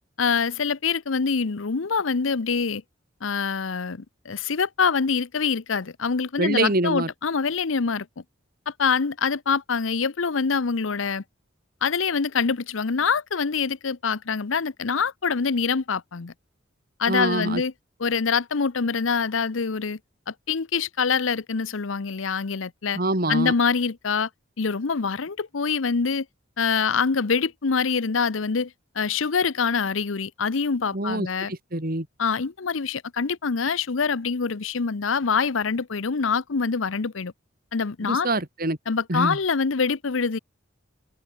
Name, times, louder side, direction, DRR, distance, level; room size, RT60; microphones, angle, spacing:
voice 1, 0.2-2.8 3.2-8.1 8.7-11.2 11.8-16.3 17.0-17.7 18.0-20.0 20.3-23.0 23.3-24.3 24.6-26.3 26.6-31.5 32.2-37.3 37.7-38.3 38.9-40.4, left 5 dB, 80° left, 0.8 m, -25 dB
voice 2, 6.4-7.1 17.1-17.6 22.9-23.5 30.9-32.1 38.0-38.8 39.1-39.4, right 2 dB, 50° right, 3.3 m, -25 dB
open air
head